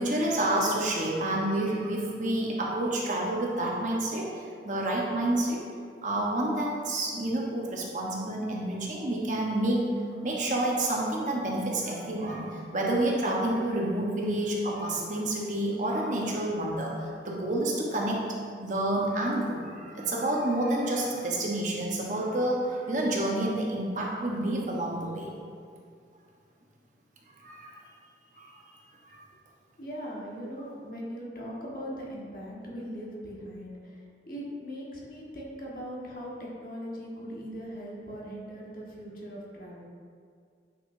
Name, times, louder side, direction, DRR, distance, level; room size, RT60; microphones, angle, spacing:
voice 1, 0.0-5.6 6.0-9.8 10.2-25.3 27.4-27.8 28.3-28.7 29.0-29.2, right 1 dB, 45° right, -3 dB, 1.1 m, -29 dB
voice 2, 29.8-39.8, equal, 50° left, -4 dB, 1.5 m, -40 dB
9.6 x 5.8 x 2.7 m, 2.2 s
head